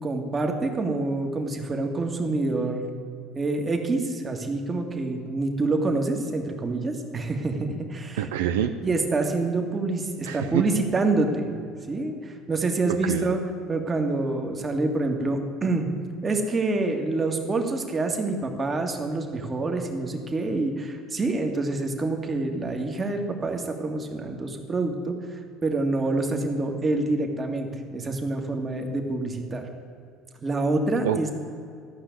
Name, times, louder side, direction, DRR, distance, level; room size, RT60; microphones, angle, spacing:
voice 1, 0.0-2.9 3.3-8.3 8.8-11.5 11.9-13.4 13.7-15.9 16.2-29.6 30.4-31.3, right 2 dB, 30° right, 4 dB, 2.0 m, -27 dB
voice 2, 8.2-8.7 10.2-10.6 12.9-13.3 31.0-31.3, right 11 dB, 90° right, 8 dB, 0.5 m, -26 dB
13.5 x 5.8 x 9.4 m, 2.4 s
supercardioid pair, 85°, 0 cm